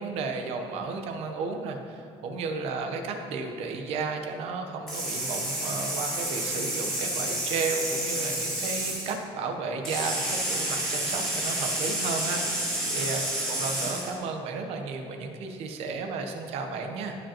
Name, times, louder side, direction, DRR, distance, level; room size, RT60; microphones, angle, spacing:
voice 1, 0.0-17.2, right 4 dB, 65° right, 4 dB, 0.9 m, -33 dB
sound 1, 4.9-9.1 9.8-14.1, right 1 dB, 5° left, 2.2 m, -30 dB
15.0 x 5.1 x 2.9 m, 2.4 s
cardioid pair, 175°, 11 cm